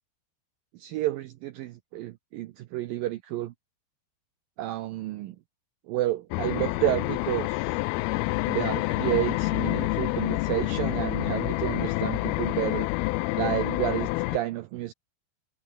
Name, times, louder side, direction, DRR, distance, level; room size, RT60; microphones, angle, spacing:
voice 1, 0.7-3.5 4.6-5.4 5.9-7.8 8.5-12.9 13.3-14.9, right 15 dB, 80° right, 2.1 m, -30 dB
sound 1, 6.3-14.4, left 22 dB, 90° left, 2.2 m, -28 dB
omnidirectional pair, 5.0 m